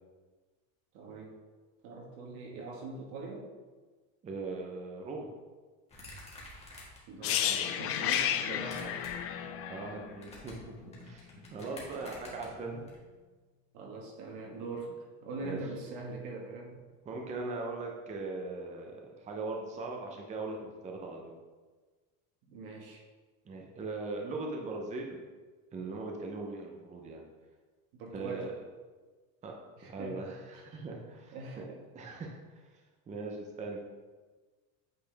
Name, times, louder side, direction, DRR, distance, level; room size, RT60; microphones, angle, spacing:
voice 1, 0.9-1.4 1.8-3.5 7.1-9.1 13.7-16.9 22.5-23.0 27.9-28.5 29.8-30.4 30.7-30.8 31.3-31.8, right 3 dB, 75° right, 0 dB, 1.7 m, -42 dB
voice 2, 4.2-5.3 9.7-12.9 15.4-15.6 17.1-21.4 23.4-25.2 25.7-27.3 28.1-28.5 29.4-29.5 29.8-31.4 31.9-32.7 33.1-33.8, right 3 dB, 20° right, 1 dB, 0.6 m, -40 dB
sound 1, 5.9-7.1 7.5-8.2 8.6-9.3 9.5-12.9, left 2 dB, 15° left, 1.5 m, -49 dB
sound 2, 7.2-11.1 11.3-11.5, left 10 dB, 40° left, 0.4 m, -32 dB
8.4 x 4.1 x 3.4 m, 1.4 s
cardioid pair, 150°, 39 cm